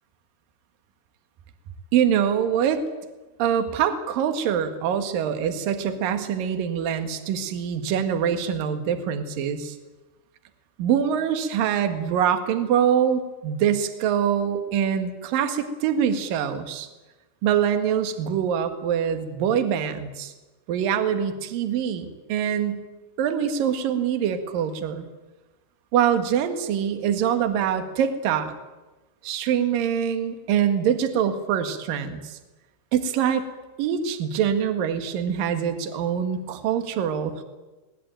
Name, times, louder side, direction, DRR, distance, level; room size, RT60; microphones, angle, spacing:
voice 1, 1.9-2.8 3.4-9.8 10.8-16.9 17.4-20.3 20.7-22.8 23.2-25.1 25.9-28.5 29.2-32.4 32.9-33.4 33.8-37.4, right 8 dB, 60° right, 8 dB, 3.1 m, -24 dB
23.5 x 19.0 x 9.1 m, 1.1 s
omnidirectional pair, 5.1 m